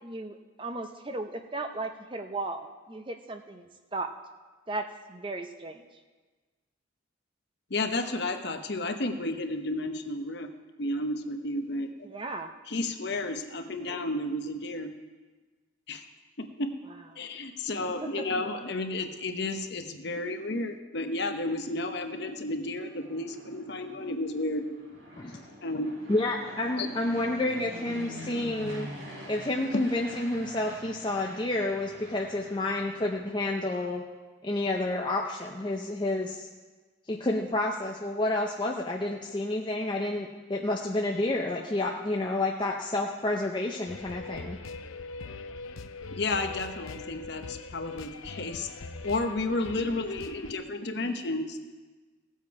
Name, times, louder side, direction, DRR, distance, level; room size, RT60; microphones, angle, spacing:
voice 1, 0.0-3.6 3.9-4.1 4.7-5.8 12.0-12.5 18.3-18.4, right 2 dB, 25° right, 6 dB, 0.6 m, -36 dB
voice 2, 7.7-10.5 10.8-11.9 12.7-14.9 15.9-16.0 16.4-16.7 17.2-24.6 25.6-25.9 26.8-26.9 46.1-48.7 49.0-51.6, left 2 dB, 55° left, 6 dB, 0.9 m, -32 dB
Fixed-wing aircraft airplane, 22.6-33.7, equal, 65° right, 4.0 m, -45 dB
voice 3, 26.1-28.9 29.3-34.0 34.4-36.5 37.1-44.6, left 2 dB, 20° left, 0 dB, 0.6 m, -29 dB
sound 1, 43.9-50.5, left 3 dB, 85° left, 0.6 m, -42 dB
17.0 x 7.4 x 4.7 m, 1.3 s
head